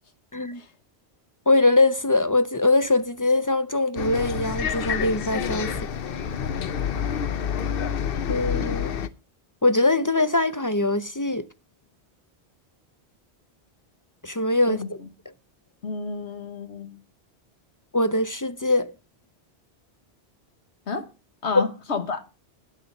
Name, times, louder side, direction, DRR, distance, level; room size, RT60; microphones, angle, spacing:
voice 1, 1.5-5.9 8.3-8.9 9.6-11.5 14.2-15.0 17.9-18.9, left 2 dB, 30° left, 0.3 m, -22 dB
Bus, 4.0-9.1, left 7 dB, 60° left, 0.8 m, -28 dB
voice 2, 14.7-15.1 15.8-17.0 20.9-21.1 21.4-22.2, left 4 dB, 85° left, 1.7 m, -30 dB
9.9 x 6.9 x 6.3 m
omnidirectional pair, 1.1 m